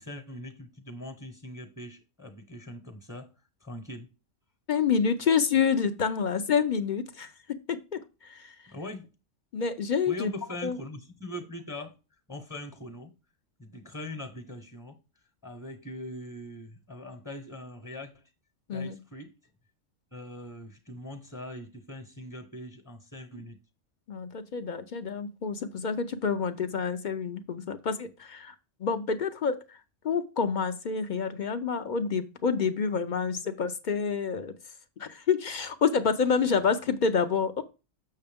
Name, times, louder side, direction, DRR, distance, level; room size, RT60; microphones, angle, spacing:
voice 1, 0.0-3.3 3.6-4.1 8.7-9.1 10.1-11.9 12.3-13.1 13.6-15.0 15.4-18.2 18.7-19.3 20.1-23.6, left 1 dB, 15° left, 1.0 m, -41 dB
voice 2, 4.7-7.3 7.7-8.6 9.5-10.3 10.6-10.8 18.7-19.0 24.1-28.5 28.8-29.8 30.0-34.5 35.0-37.6, left 6 dB, 55° left, 0.5 m, -28 dB
6.8 x 6.5 x 3.5 m
omnidirectional pair, 1.3 m